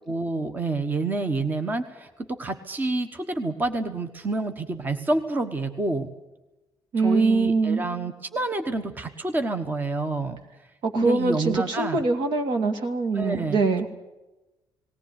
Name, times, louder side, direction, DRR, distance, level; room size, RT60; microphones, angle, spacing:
voice 1, 0.1-6.1 7.0-10.4 10.9-12.0 13.1-13.9, right 2 dB, 20° right, 9 dB, 1.2 m, -28 dB
voice 2, 6.9-7.8 10.8-13.9, right 3 dB, 70° right, 5 dB, 2.4 m, -23 dB
19.0 x 17.5 x 9.6 m, 1.1 s
cardioid pair, 140°, 8 cm